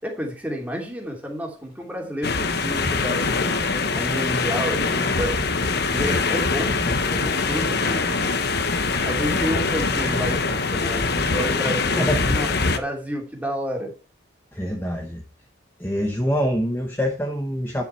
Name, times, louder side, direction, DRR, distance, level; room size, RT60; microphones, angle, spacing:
voice 1, 0.0-3.6 3.9-5.4 5.9-13.9, equal, 5° right, 0 dB, 2.7 m, -31 dB
sound 1, 2.2-12.8, left 4 dB, 50° left, 1.1 m, -23 dB
voice 2, 14.5-15.2 15.8-17.8, equal, 10° left, 3 dB, 1.0 m, -25 dB
10.5 x 7.2 x 4.4 m, 0.34 s
head